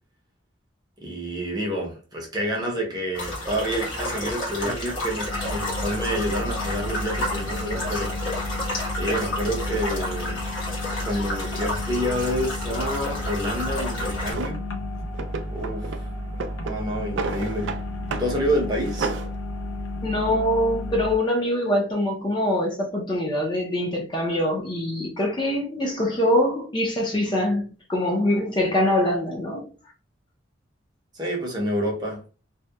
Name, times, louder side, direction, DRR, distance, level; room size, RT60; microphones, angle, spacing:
voice 1, 1.0-8.2 8.9-10.4 11.0-14.6 15.5-16.0 16.6-17.7 18.2-19.1 31.1-32.2, equal, 20° right, 0.6 m, -28 dB
sound 1, 3.1-14.3, left 1 dB, 85° left, 1.1 m, -31 dB
sound 2, 5.3-21.2, left 2 dB, 70° left, 0.6 m, -32 dB
Drawer open or close, 14.3-14.6 15.1-16.0 16.3-17.8 18.1-18.3 18.6-19.3, right 4 dB, 70° right, 0.3 m, -31 dB
voice 2, 20.0-29.7, left 1 dB, 25° left, 0.5 m, -24 dB
2.7 x 2.1 x 2.2 m
head